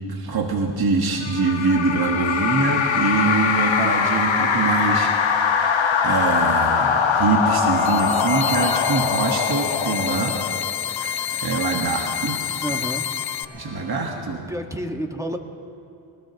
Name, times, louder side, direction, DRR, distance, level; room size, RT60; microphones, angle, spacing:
voice 1, 0.1-10.4 10.9-12.8 13.5-14.4, right 4 dB, 50° right, 1 dB, 1.6 m, -24 dB
sound 1, 1.2-10.9, left 6 dB, 70° left, 1.2 m, -22 dB
sound 2, 6.6-14.2, left 1 dB, 10° left, 4.5 m, -41 dB
sound 3, 7.7-13.4, left 9 dB, 50° left, 0.6 m, -28 dB
voice 2, 12.6-13.1 14.5-15.4, right 1 dB, 5° right, 3 dB, 1.5 m, -29 dB
20.5 x 18.5 x 3.0 m, 2.7 s
cardioid pair, 55°, 48 cm